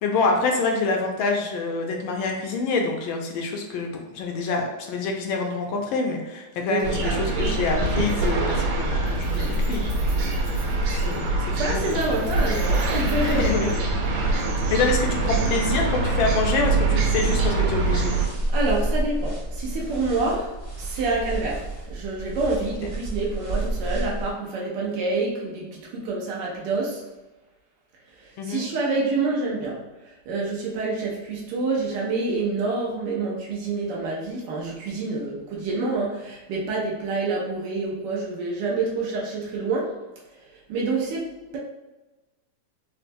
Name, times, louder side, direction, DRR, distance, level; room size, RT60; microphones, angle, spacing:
voice 1, 0.0-9.8 10.2-10.7 11.0-11.8 13.2-13.7 14.1-14.4 14.7-18.1 28.4-28.7, left 4 dB, 75° left, 2 dB, 1.3 m, -26 dB
voice 2, 6.7-7.7 11.5-13.8 14.4-14.5 18.5-27.0 28.2-29.8 30.3-40.0 40.5-41.6, right 3 dB, 75° right, -3 dB, 1.0 m, -27 dB
sound 1, 6.8-18.3, right 3 dB, 90° right, 1.5 m, -24 dB
Keys jangling, 7.4-7.5 7.8-8.6 8.9-11.3 11.8-14.1, right 1 dB, 50° right, 0.8 m, -48 dB
sound 2, 17.3-24.3, right 1 dB, 10° right, 0.7 m, -30 dB
4.3 x 2.0 x 2.5 m, 1.1 s
omnidirectional pair, 2.4 m